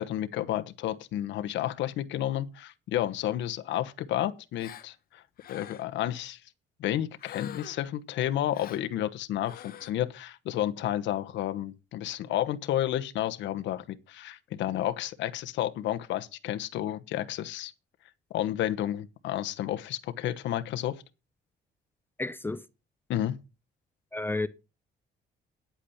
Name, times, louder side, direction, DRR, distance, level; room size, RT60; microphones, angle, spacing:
voice 1, 0.0-5.2 5.5-6.4 6.8-17.7 18.3-21.0 23.1-23.4, left 12 dB, 85° left, 1.1 m, -31 dB
Gasp, 4.6-4.9 5.4-6.0 7.2-7.9 8.5-8.9 9.4-9.9, left 11 dB, 55° left, 1.0 m, -45 dB
voice 2, 22.2-22.6 24.1-24.5, left 2 dB, 10° left, 0.5 m, -31 dB
10.0 x 8.3 x 5.8 m
cardioid pair, 160°, 19 cm